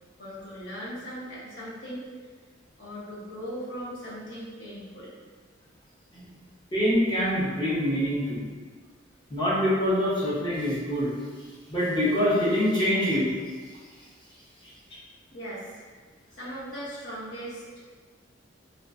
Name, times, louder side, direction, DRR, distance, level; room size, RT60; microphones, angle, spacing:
voice 1, 0.2-2.0 2.8-5.1 15.3-15.8 16.3-17.6, equal, 65° left, -8 dB, 0.8 m, -38 dB
voice 2, 6.7-8.5 9.3-11.1 11.7-13.3, equal, 25° left, -7 dB, 0.5 m, -25 dB
2.5 x 2.1 x 2.4 m, 1.5 s
head